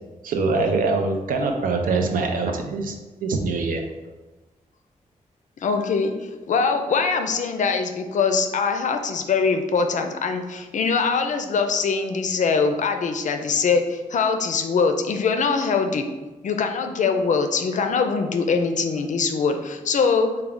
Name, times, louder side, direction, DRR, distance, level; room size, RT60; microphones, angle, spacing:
voice 1, 0.2-3.0 3.2-3.8, right 3 dB, 85° right, 3 dB, 0.5 m, -23 dB
voice 2, 5.6-16.1 16.4-20.3, left 5 dB, 60° left, 6 dB, 0.4 m, -22 dB
3.3 x 2.2 x 3.6 m, 1.2 s
cardioid pair, 70°, 14 cm